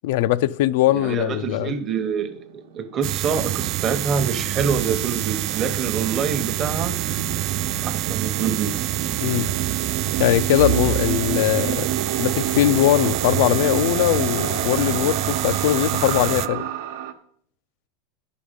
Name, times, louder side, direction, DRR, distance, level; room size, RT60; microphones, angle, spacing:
voice 1, 0.0-1.8 9.2-9.5 10.2-11.8 12.2-16.7, left 14 dB, 65° left, 0.3 m, -21 dB
voice 2, 0.9-7.0 7.8-8.7, right 6 dB, 30° right, 0.9 m, -26 dB
sound 1, 1.9-17.1, right 8 dB, 80° right, 1.0 m, -30 dB
sound 2, 3.0-16.5, right 13 dB, 45° right, 0.3 m, -26 dB
11.0 x 5.1 x 5.1 m
supercardioid pair, 140°, 0 cm